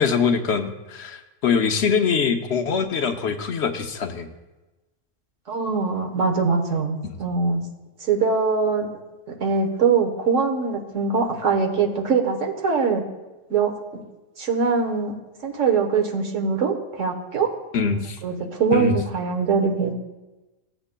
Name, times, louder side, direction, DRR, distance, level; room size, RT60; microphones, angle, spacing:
voice 1, 0.0-4.3 17.7-18.2 18.7-19.0, left 6 dB, 65° left, 6 dB, 1.0 m, -23 dB
voice 2, 5.5-7.6 8.0-8.9 9.4-13.0 13.5-13.7 14.4-15.1 15.4-17.5 18.2-19.9, right 5 dB, 90° right, 3 dB, 1.5 m, -22 dB
15.5 x 8.0 x 2.2 m, 1.1 s
omnidirectional pair, 1.3 m